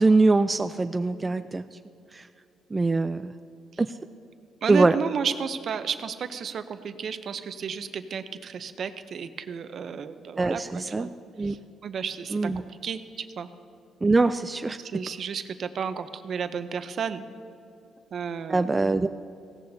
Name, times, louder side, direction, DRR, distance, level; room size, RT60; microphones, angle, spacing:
voice 1, 0.0-1.6 2.1-2.2 2.7-3.3 3.8-3.9 4.7-5.0 10.4-11.1 11.4-11.5 12.3-12.6 14.0-14.8 18.5-19.1, right 3 dB, 20° right, 10 dB, 0.3 m, -22 dB
voice 2, 4.6-11.1 11.4-11.6 11.8-12.4 12.8-13.5 14.8-17.2 18.1-18.6, right 6 dB, 55° right, 11 dB, 0.6 m, -32 dB
17.0 x 14.0 x 2.7 m, 2.5 s
cardioid pair, 90°, 0 cm